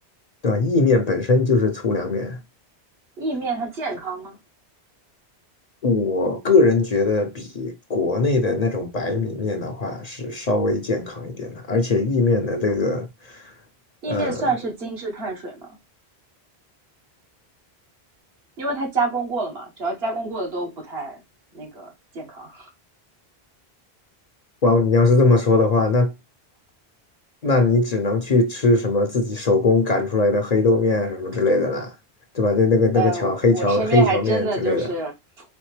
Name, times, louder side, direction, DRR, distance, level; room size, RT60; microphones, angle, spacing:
voice 1, 0.4-2.4 5.8-13.5 14.1-14.5 24.6-26.1 27.4-31.9 32.3-34.9, left 3 dB, 45° left, 0.6 m, -20 dB
voice 2, 3.2-4.4 14.0-15.7 18.6-21.2 21.5-22.7 32.9-35.1, right 3 dB, 70° right, 1.5 m, -27 dB
4.2 x 3.5 x 3.2 m
omnidirectional pair, 1.1 m